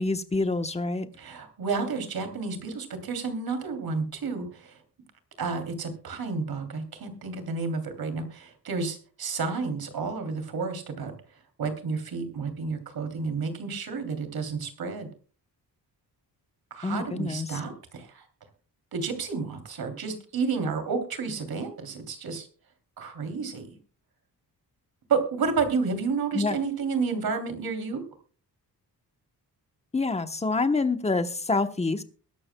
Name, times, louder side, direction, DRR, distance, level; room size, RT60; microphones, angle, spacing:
voice 1, 0.0-1.1 16.8-17.6 26.3-26.6 29.9-32.0, left 3 dB, 15° left, 8 dB, 1.0 m, -27 dB
voice 2, 1.2-4.8 5.4-11.1 11.6-15.1 16.7-18.2 18.9-22.5 23.0-23.7 25.1-28.0, right 4 dB, 65° right, 7 dB, 3.1 m, -31 dB
22.0 x 12.0 x 2.3 m, 0.39 s
wide cardioid pair, 145°, 39 cm